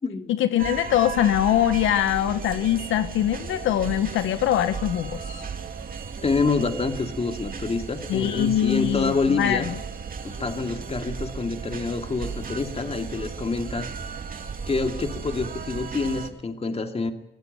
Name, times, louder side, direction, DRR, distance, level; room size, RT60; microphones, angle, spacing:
voice 1, 0.3-5.4 8.1-9.7, left 11 dB, 85° left, 10 dB, 1.3 m, -23 dB
sound 1, 0.6-16.3, right 6 dB, 45° right, 2.6 m, -35 dB
voice 2, 6.2-9.7 10.2-13.9 14.7-17.1, left 4 dB, 30° left, 6 dB, 2.5 m, -27 dB
23.5 x 17.0 x 9.4 m, 0.84 s
cardioid pair, 90°, 20 cm